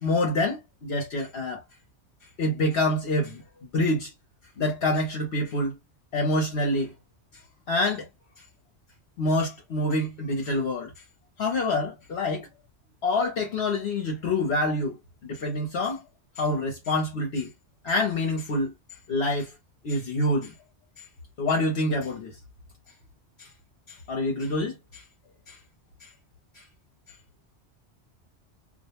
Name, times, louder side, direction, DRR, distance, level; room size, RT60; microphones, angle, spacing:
voice 1, 0.0-1.6 2.4-3.4 3.7-4.1 4.6-5.8 6.1-6.9 7.7-8.1 9.2-10.9 11.4-12.5 13.0-15.0 15.2-16.0 16.4-17.5 17.8-18.7 19.1-19.5 19.8-20.5 21.0-21.1 21.4-22.4 23.4-23.5 23.9-25.0 25.5-25.6 26.0-26.1 26.5-26.6, left 2 dB, 65° left, 1.0 m, -26 dB
2.5 x 2.2 x 2.9 m
omnidirectional pair, 1.2 m